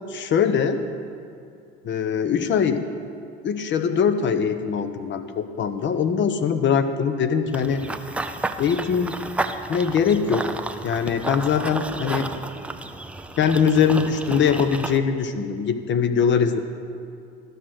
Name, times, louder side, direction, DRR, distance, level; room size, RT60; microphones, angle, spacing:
voice 1, 0.1-0.8 1.8-2.8 3.4-7.8 8.6-9.2 9.7-10.4 10.8-12.3 13.4-16.6, left 6 dB, 35° left, 9 dB, 0.8 m, -22 dB
Run / Bird vocalization bird call bird song, 7.5-15.0, right 2 dB, 5° right, 0.3 m, -32 dB
12.5 x 6.2 x 6.4 m, 2.5 s
hypercardioid pair, 85°, 33 cm